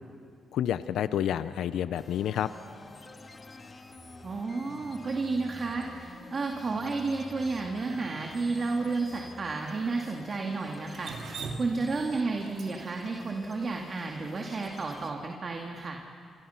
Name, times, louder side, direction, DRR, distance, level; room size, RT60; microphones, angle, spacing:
voice 1, 0.5-2.5, left 10 dB, 80° left, 13 dB, 0.6 m, -29 dB
sound 1, 1.9-15.1, left 3 dB, 35° left, 2.3 m, -49 dB
sound 2, 3.1-6.1 6.5-9.6 10.0-10.1, equal, 5° right, 4.8 m, -52 dB
voice 2, 4.2-16.0, right 3 dB, 40° right, 1 dB, 2.3 m, -32 dB
Drip, 10.9-15.1, right 4 dB, 65° right, 2.5 m, -41 dB
27.0 x 26.5 x 5.9 m, 2.3 s
cardioid pair, 80°, 0 cm